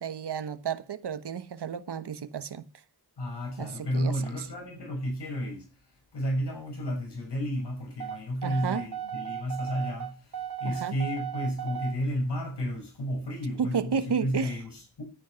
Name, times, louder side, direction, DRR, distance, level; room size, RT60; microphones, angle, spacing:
voice 1, 0.0-2.6 3.6-4.5 8.4-8.9 10.6-10.9 13.6-14.6, right 7 dB, 80° right, 1.2 m, -32 dB
voice 2, 3.2-5.7 6.1-15.0, equal, 90° left, 6.5 m, -32 dB
sound 1, 8.0-12.0, right 9 dB, 60° right, 3.1 m, -36 dB
10.5 x 10.0 x 5.8 m
wide cardioid pair, 75°, 40 cm